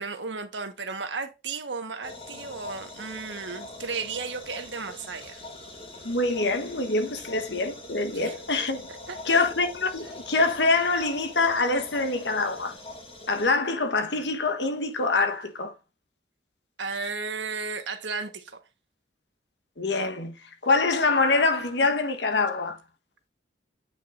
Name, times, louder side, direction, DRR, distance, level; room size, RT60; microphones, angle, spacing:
voice 1, 0.0-5.4 7.2-7.3 8.1-8.4 9.1-9.4 16.8-18.6, right 4 dB, 90° right, 1.3 m, -34 dB
sound 1, 2.0-13.5, left 2 dB, 35° left, 2.0 m, -43 dB
voice 2, 6.0-8.9 9.2-12.7 13.3-15.7 19.8-20.3 20.6-22.8, left 3 dB, 75° left, 1.2 m, -25 dB
8.9 x 5.5 x 2.6 m
head